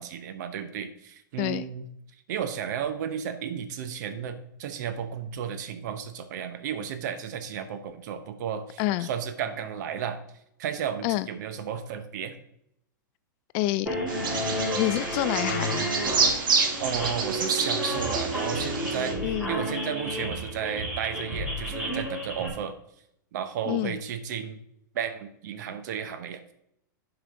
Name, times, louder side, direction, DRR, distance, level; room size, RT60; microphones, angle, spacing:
voice 1, 0.0-1.9 2.3-10.2 10.6-12.3 16.8-22.8 23.3-24.6 24.9-26.4, right 8 dB, 60° right, 9 dB, 1.0 m, -33 dB
voice 2, 8.8-9.1 11.0-11.3 13.5-13.9 14.7-16.0 19.2-19.5 23.7-24.0, left 16 dB, 40° left, 16 dB, 0.3 m, -27 dB
sound 1, 13.9-22.5, equal, 10° right, 2.7 m, -31 dB
Bird vocalization bird call bird song, 14.1-19.1, right 5 dB, 80° right, 1.6 m, -28 dB
10.5 x 5.0 x 3.8 m, 0.77 s
hypercardioid pair, 130°, 11 cm